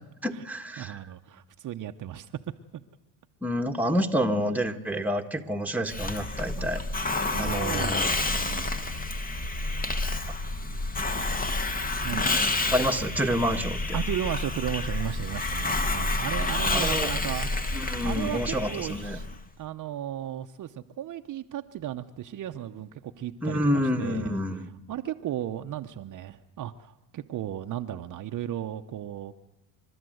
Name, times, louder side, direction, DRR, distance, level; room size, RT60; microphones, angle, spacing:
voice 1, 0.2-1.0 3.4-6.8 7.4-8.1 12.6-14.0 16.7-17.1 17.7-19.2 23.4-24.7, equal, 5° right, 4 dB, 1.5 m, -28 dB
voice 2, 0.8-2.3 6.6-6.7 7.3-8.7 12.0-12.5 13.9-19.3 19.6-24.4 24.9-29.3, right 11 dB, 45° right, 7 dB, 0.9 m, -35 dB
Hiss, 5.9-19.4, left 2 dB, 20° left, 1.5 m, -29 dB
29.5 x 12.5 x 7.9 m, 1.1 s
supercardioid pair, 90°, 43 cm